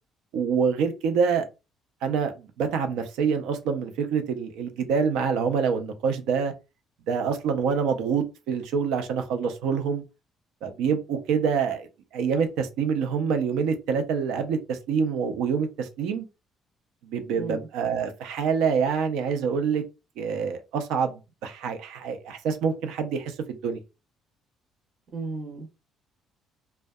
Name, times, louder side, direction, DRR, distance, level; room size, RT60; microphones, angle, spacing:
voice 1, 0.3-1.5 2.0-6.5 7.1-10.0 10.6-16.2 17.0-19.8 20.2-23.8, right 6 dB, 90° right, 0.4 m, -26 dB
voice 2, 17.4-17.7 25.1-25.7, right 3 dB, 45° right, 0.6 m, -34 dB
2.6 x 2.2 x 2.2 m
cardioid pair, 160°, 0 cm